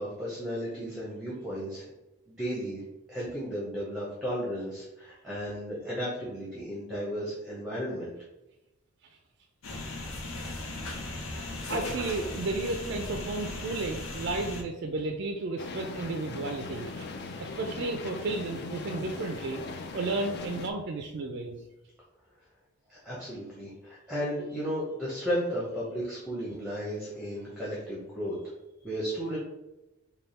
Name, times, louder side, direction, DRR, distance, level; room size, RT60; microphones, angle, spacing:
voice 1, 0.0-1.9 2.3-2.8 3.1-8.1 22.9-28.5 28.8-29.4, equal, 5° right, -7 dB, 0.8 m, -34 dB
sound 1, 9.6-14.6, left 2 dB, 80° left, 0.7 m, -37 dB
voice 2, 11.3-17.1 17.4-19.6 19.9-21.6, right 3 dB, 50° right, 3 dB, 0.3 m, -33 dB
sound 2, 15.6-20.7, left 3 dB, 50° left, 0.4 m, -39 dB
3.4 x 2.3 x 4.1 m, 0.97 s
head